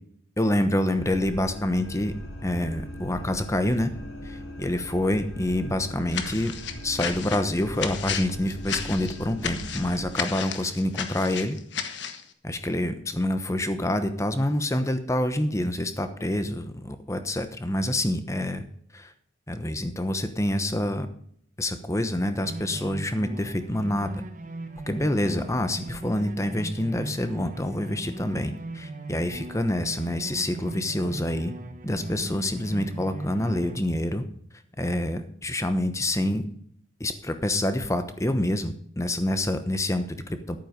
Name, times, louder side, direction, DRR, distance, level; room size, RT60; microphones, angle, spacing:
voice 1, 0.4-2.1 2.4-3.9 4.2-6.5 6.8-11.6 12.4-18.6 18.9-19.1 19.5-21.1 21.6-24.1 24.9-31.5 31.8-34.2 34.8-36.5 37.0-40.6, left 1 dB, 15° left, 9 dB, 1.0 m, -27 dB
sound 1, 0.9-10.1, equal, 90° left, 3.8 m, -39 dB
sound 2, 6.1-12.2, left 7 dB, 60° left, 1.3 m, -33 dB
sound 3, 22.4-33.8, right 2 dB, 40° right, 1.1 m, -39 dB
11.0 x 9.3 x 5.2 m, 0.64 s
head